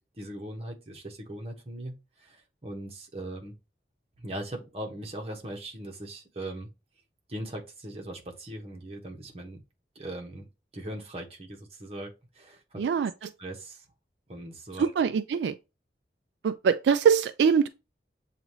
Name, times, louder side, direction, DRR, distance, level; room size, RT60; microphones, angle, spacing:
voice 1, 0.2-3.5 4.2-6.7 7.3-9.6 9.9-12.9 13.4-13.8 14.3-14.9, right 1 dB, 35° right, 1.1 m, -40 dB
voice 2, 12.8-13.3 14.8-15.6 16.4-17.7, right 6 dB, 75° right, 0.3 m, -23 dB
7.1 x 2.5 x 3.0 m
head